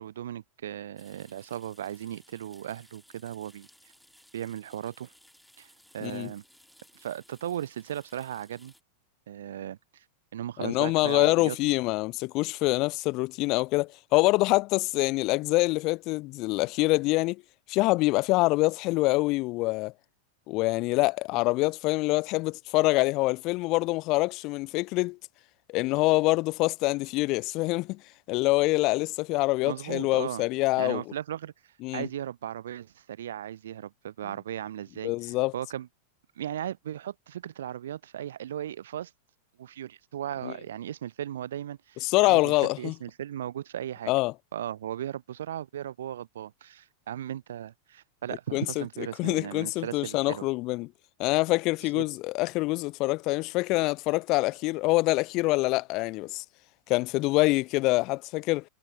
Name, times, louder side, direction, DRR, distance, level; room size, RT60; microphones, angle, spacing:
voice 1, 0.0-3.7 4.3-5.1 5.6-6.4 7.0-8.7 9.3-10.0 10.3-11.6 29.6-30.4 30.8-31.5 31.9-35.9 36.4-39.1 39.6-44.1 44.5-50.5 51.9-52.0, right 11 dB, 60° right, 0.5 m, -37 dB
sound 1, 1.0-8.8, equal, ahead, 2.4 m, -59 dB
voice 2, 10.6-17.4 17.7-19.9 20.5-25.2 25.7-28.0 28.3-31.0 31.8-32.1 35.0-35.5 40.4-40.5 42.0-42.9 44.1-44.3 48.5-48.8 49.2-50.9 51.2-56.4 56.9-58.6, left 22 dB, 40° left, 0.4 m, -25 dB
figure-of-eight pair, 90°, 0 cm